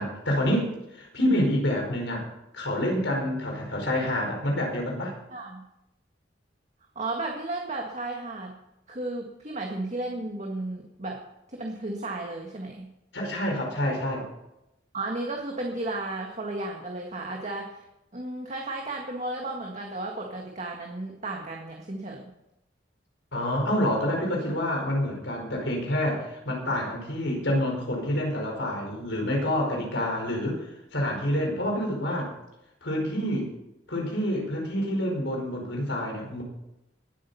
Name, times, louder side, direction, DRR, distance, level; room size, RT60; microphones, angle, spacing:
voice 1, 0.0-2.2 2.5-5.1 13.1-14.2 23.3-30.7 30.9-32.3 32.8-33.5 33.9-36.4, left 1 dB, 85° left, 1 dB, 5.0 m, -27 dB
voice 2, 5.3-5.6 7.0-8.5 8.9-11.2 11.5-12.9 14.9-17.8 18.1-22.3, right 2 dB, 40° right, 1 dB, 1.8 m, -34 dB
20.0 x 8.8 x 5.6 m, 0.87 s
head